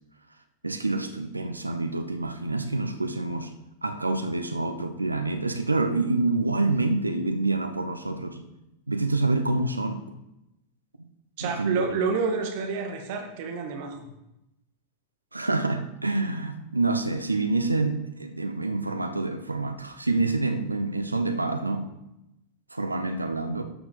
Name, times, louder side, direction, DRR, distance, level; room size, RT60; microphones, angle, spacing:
voice 1, 0.6-3.5 3.8-8.5 8.9-10.0 11.4-11.9 15.3-21.9 22.7-23.6, right 2 dB, 85° right, 8 dB, 0.9 m, -27 dB
voice 2, 11.4-14.0, right 4 dB, 50° right, 3 dB, 1.9 m, -28 dB
12.5 x 6.2 x 5.2 m, 0.90 s
figure-of-eight pair, 90°, 0 cm